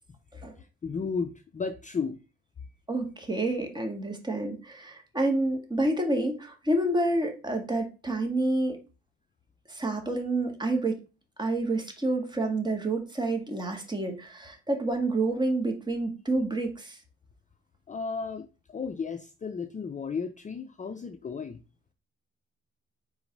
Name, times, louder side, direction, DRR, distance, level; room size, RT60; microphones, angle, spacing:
voice 1, 0.8-2.2 17.9-21.6, left 5 dB, 25° left, 0.5 m, -34 dB
voice 2, 2.9-8.8 9.7-11.0 11.4-17.0, right 2 dB, 15° right, 1.9 m, -28 dB
4.8 x 3.9 x 5.3 m
cardioid pair, 90°, 30 cm